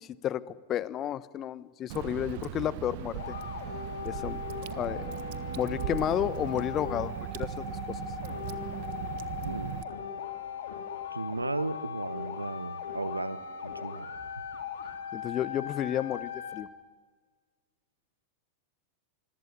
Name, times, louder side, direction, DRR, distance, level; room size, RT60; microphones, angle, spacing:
voice 1, 0.0-3.3 4.0-4.4 4.8-5.1 5.6-8.0 15.1-16.7, left 11 dB, 30° left, 18 dB, 1.0 m, -32 dB
Water / Drip, 1.9-9.8, right 16 dB, 50° right, 1.2 m, -38 dB
sound 1, 3.2-16.6, left 7 dB, 60° left, 3.7 m, -39 dB
voice 2, 9.4-9.8 11.1-14.1, right 2 dB, 85° right, 17 dB, 1.1 m, -35 dB
25.5 x 23.5 x 9.8 m, 1.4 s
figure-of-eight pair, 90°, 0 cm